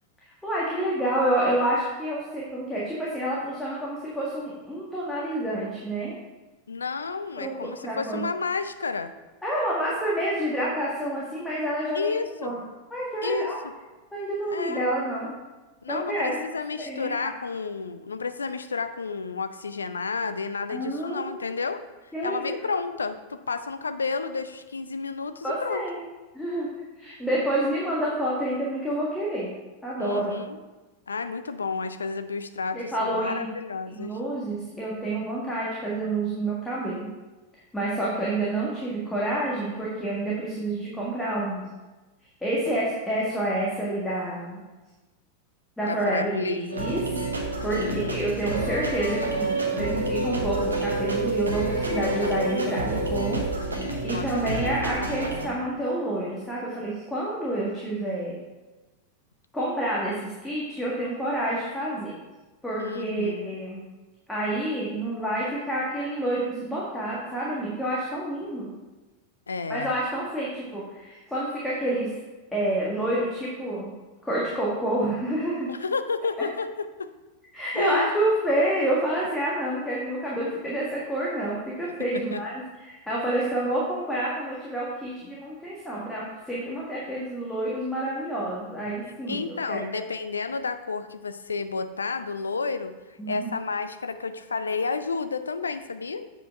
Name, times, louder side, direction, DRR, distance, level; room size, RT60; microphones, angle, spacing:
voice 1, 0.4-6.1 7.4-8.2 9.4-12.1 12.4-12.6 12.9-13.6 14.1-15.3 15.9-16.4 16.8-17.3 20.7-21.4 22.1-22.4 25.4-26.0 26.3-26.7 27.0-29.5 29.8-30.4 32.7-33.5 33.9-37.1 37.7-41.7 42.4-44.6 45.8-47.0 47.6-53.4 53.8-58.4 59.5-62.1 62.6-63.8 64.3-68.7 69.7-72.1 72.5-73.9 74.2-75.7 76.4-76.5 77.5-90.0 93.2-93.5, right 1 dB, 5° left, -6 dB, 1.6 m, -28 dB
voice 2, 6.7-9.1 11.9-12.5 13.2-13.5 14.5-14.8 15.8-21.8 22.2-25.8 30.0-30.6 31.1-34.2 45.8-46.7 47.7-48.3 54.1-54.3 54.5-54.7 62.8-63.5 69.5-69.9 75.7-77.1 77.7-78.1 82.3-82.4 89.3-93.0 93.3-96.3, left 4 dB, 75° left, 10 dB, 0.4 m, -31 dB
sound 1, 46.7-55.5, right 2 dB, 75° right, 1.1 m, -28 dB
7.9 x 5.1 x 4.7 m, 1.2 s
figure-of-eight pair, 90°, 0 cm